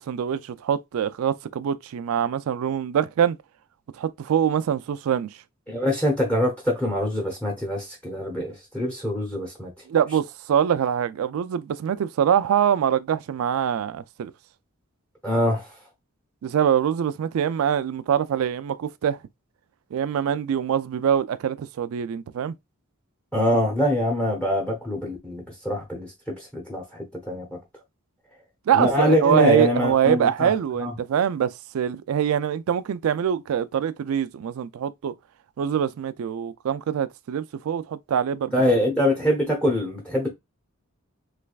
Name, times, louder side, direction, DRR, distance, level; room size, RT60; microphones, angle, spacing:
voice 1, 0.0-3.4 4.0-5.3 9.9-14.3 16.4-19.2 19.9-22.5 28.7-35.1 35.6-38.5, right 8 dB, 75° right, 0.3 m, -24 dB
voice 2, 5.7-9.7 15.2-15.7 23.3-27.6 28.7-30.5 30.8-30.9 38.5-40.3, left 1 dB, 5° left, 0.7 m, -24 dB
3.3 x 3.2 x 2.3 m
head